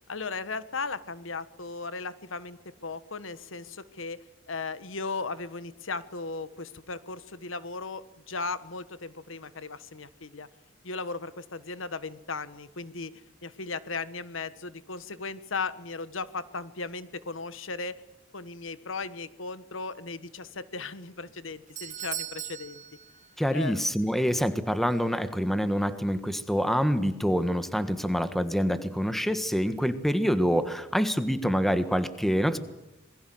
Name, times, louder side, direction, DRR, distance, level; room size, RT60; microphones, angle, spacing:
voice 1, 0.1-4.2 4.5-10.5 10.8-13.1 13.4-18.0 18.3-22.8 23.5-23.8, left 4 dB, 85° left, 14 dB, 1.4 m, -36 dB
Doorbell, 21.3-23.8 24.1-24.2 24.9-25.0, right 11 dB, 40° right, 1.3 m, -39 dB
voice 2, 23.4-32.6, equal, ahead, 11 dB, 1.5 m, -26 dB
27.0 x 21.5 x 7.8 m, 0.96 s
head